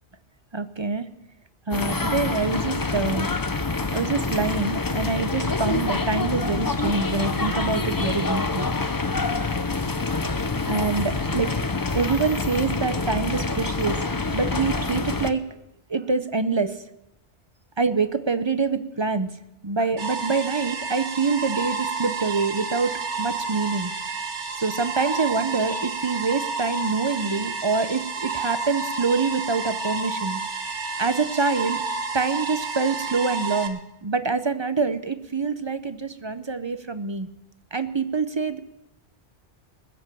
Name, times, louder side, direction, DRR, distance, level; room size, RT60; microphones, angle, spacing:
voice 1, 0.5-1.1 1.7-3.3 3.9-8.7 10.6-11.6 11.9-14.0 14.3-15.6 15.9-16.8 17.8-19.3 19.6-23.9 24.6-30.4 31.0-31.8 32.1-37.3 37.7-38.6, right 4 dB, 30° right, 11 dB, 0.6 m, -25 dB
sound 1, 1.7-15.3, left 3 dB, 25° left, 0.5 m, -26 dB
sound 2, 20.0-33.7, right 4 dB, 75° right, 1.8 m, -30 dB
20.5 x 7.6 x 7.7 m, 0.89 s
omnidirectional pair, 1.2 m